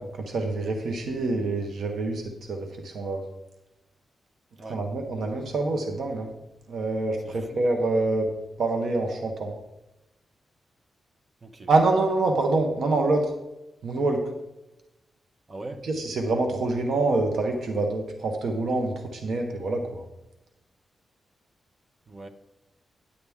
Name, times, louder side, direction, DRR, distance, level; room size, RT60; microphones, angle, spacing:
voice 1, 0.0-3.2 4.7-6.3 6.7-8.3 8.6-9.5 11.7-13.3 13.8-14.2 15.8-20.0, right 2 dB, 75° right, 1.1 m, -26 dB
voice 2, 7.2-7.6 11.4-11.7 15.5-15.9 22.1-22.3, right 2 dB, 35° right, 0.8 m, -41 dB
9.9 x 8.5 x 3.6 m
cardioid pair, 95°, 0 cm